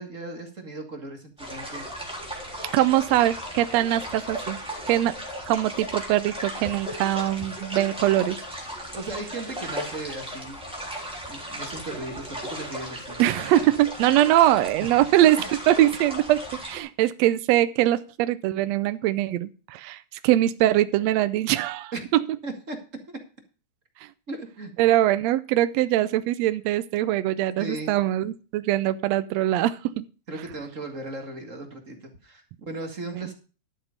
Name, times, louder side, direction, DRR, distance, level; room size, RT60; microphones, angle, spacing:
voice 1, 0.0-1.9 8.9-10.8 11.3-13.2 21.9-22.0 22.4-22.8 23.1-23.2 24.3-24.7 27.6-28.0 30.3-33.3, right 2 dB, 30° right, 4 dB, 1.8 m, -36 dB
sound 1, 1.4-16.8, equal, ahead, 3.3 m, -36 dB
voice 2, 2.7-4.6 4.9-5.2 5.5-8.4 13.2-22.2 24.8-30.0 33.2-33.3, right 14 dB, 75° right, 13 dB, 1.7 m, -22 dB
12.0 x 7.9 x 5.1 m, 0.36 s
omnidirectional pair, 3.4 m